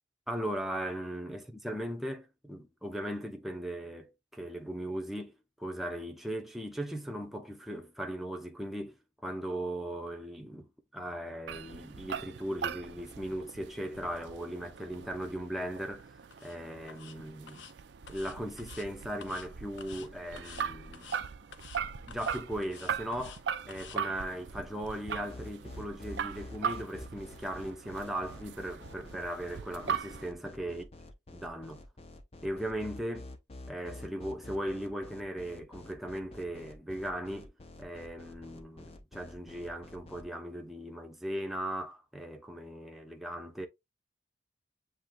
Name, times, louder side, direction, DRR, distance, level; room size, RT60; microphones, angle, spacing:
voice 1, 0.3-9.0 9.2-16.1 16.4-17.7 18.1-21.1 22.1-30.8 31.3-31.8 32.4-33.3 33.7-37.5 37.8-43.7, right 1 dB, ahead, 0.7 m, -38 dB
sound 1, 11.5-30.3, right 6 dB, 75° right, 0.4 m, -40 dB
sound 2, 16.3-16.6 16.9-17.2 17.5-17.7 18.1-18.9 19.2-19.5 19.8-20.1 20.4-20.7 20.9-21.2 21.5-21.8 22.1-23.4 23.7-24.0, left 7 dB, 90° left, 0.6 m, -50 dB
sound 3, 25.3-40.2, left 2 dB, 35° left, 0.6 m, -48 dB
7.4 x 2.9 x 2.3 m
head